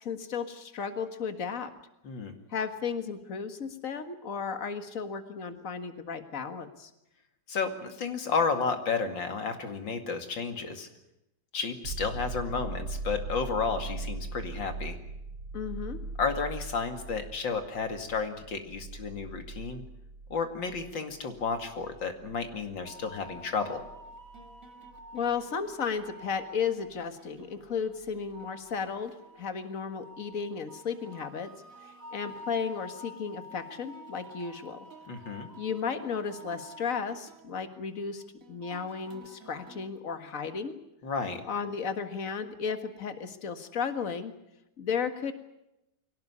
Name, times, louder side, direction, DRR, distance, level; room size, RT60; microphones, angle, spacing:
voice 1, 0.0-1.7 2.5-6.9 15.5-16.0 25.1-31.5 31.8-34.9 35.6-38.2 38.5-40.7 41.5-44.3 44.8-45.3, left 6 dB, 45° left, 8 dB, 2.0 m, -34 dB
voice 2, 7.5-10.9 11.5-15.0 16.2-19.8 20.3-23.8 35.1-35.5 41.0-41.4, left 5 dB, 80° left, 6 dB, 3.0 m, -32 dB
sound 1, 11.8-25.3 28.1-28.2, right 3 dB, 75° right, 1.9 m, -41 dB
sound 2, 22.8-39.9, equal, 45° right, 2.6 m, -49 dB
23.5 x 17.5 x 9.8 m, 0.89 s
omnidirectional pair, 2.0 m